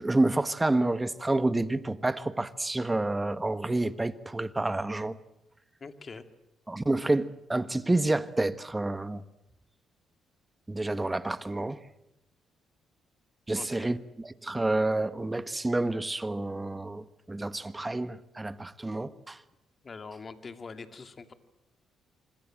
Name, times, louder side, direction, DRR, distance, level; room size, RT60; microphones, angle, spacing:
voice 1, 0.0-5.2 6.7-9.2 10.7-11.8 13.5-19.4, right 2 dB, 15° right, 1.4 m, -29 dB
voice 2, 5.8-6.2 13.5-13.9 19.8-21.3, left 4 dB, 35° left, 2.5 m, -43 dB
26.5 x 25.5 x 7.7 m
cardioid pair, 90°, 0 cm